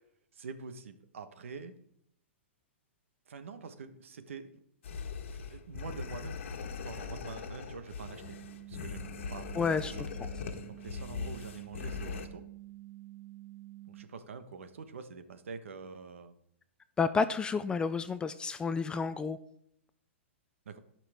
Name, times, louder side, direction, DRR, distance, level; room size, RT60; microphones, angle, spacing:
voice 1, 0.3-1.7 3.3-4.5 5.5-6.4 6.9-8.4 8.7-10.0 10.7-12.4 13.9-16.3 20.6-20.8, right 5 dB, 80° right, 9 dB, 1.2 m, -45 dB
sound 1, 4.8-12.3, left 5 dB, 70° left, 1.4 m, -40 dB
sound 2, 8.2-14.1, right 17 dB, 30° right, 0.7 m, -49 dB
voice 2, 9.6-9.9 17.0-19.4, left 5 dB, 15° left, 12 dB, 0.4 m, -30 dB
17.0 x 5.9 x 3.6 m, 0.71 s
hypercardioid pair, 130°, 7 cm